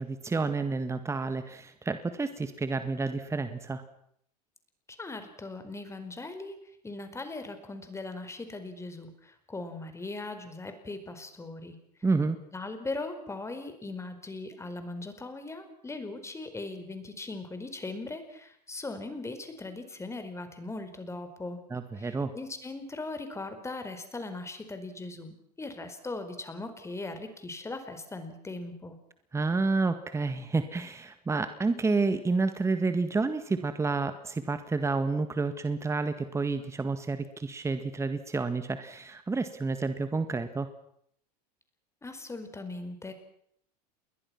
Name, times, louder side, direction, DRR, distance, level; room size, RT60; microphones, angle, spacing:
voice 1, 0.0-3.8 12.0-12.4 21.7-22.3 29.3-40.7, right 3 dB, 15° right, 10 dB, 1.9 m, -29 dB
voice 2, 5.0-6.5 6.8-11.8 12.5-21.6 22.0-29.0 42.0-43.1, left 2 dB, 15° left, 8 dB, 4.6 m, -39 dB
29.0 x 21.5 x 6.0 m, 0.69 s
hypercardioid pair, 90°, 21 cm